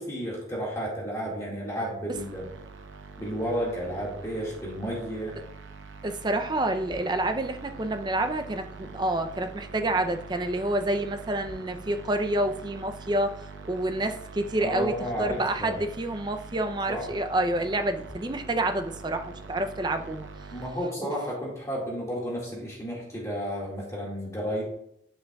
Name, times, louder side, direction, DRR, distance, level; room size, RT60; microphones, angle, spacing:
voice 1, 0.0-2.5 3.2-5.4 14.6-15.8 16.9-17.0 20.5-24.6, equal, 15° left, -4 dB, 1.9 m, -32 dB
sound 1, 2.1-20.7, right 4 dB, 85° right, 0.8 m, -44 dB
voice 2, 6.0-20.3 21.0-21.1, right 1 dB, 25° right, 7 dB, 0.4 m, -28 dB
9.4 x 7.7 x 2.3 m, 0.73 s
head